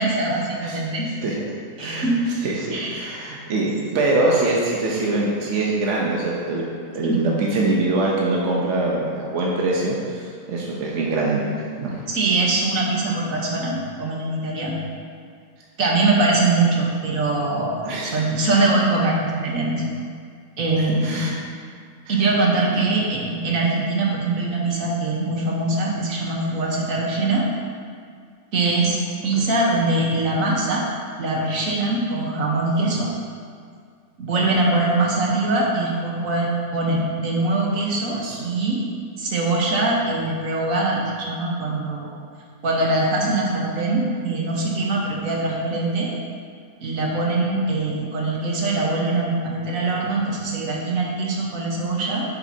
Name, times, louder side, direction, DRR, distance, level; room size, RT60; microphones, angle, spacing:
voice 1, 0.0-1.1 1.8-2.1 2.7-3.1 7.0-7.2 12.1-14.7 15.8-19.8 20.6-21.3 22.1-27.4 28.5-30.8 31.2-33.1 34.2-38.8 39.2-41.0 41.3-42.2 42.6-46.1 46.8-52.2, right 2 dB, 80° right, -2 dB, 1.5 m, -22 dB
voice 2, 2.4-12.0 17.8-18.2 20.8-21.4 22.1-22.2 22.7-22.8 29.4-29.5 38.2-38.4, right 2 dB, 65° right, -3 dB, 1.2 m, -24 dB
8.4 x 7.2 x 2.8 m, 2.1 s
omnidirectional pair, 1.4 m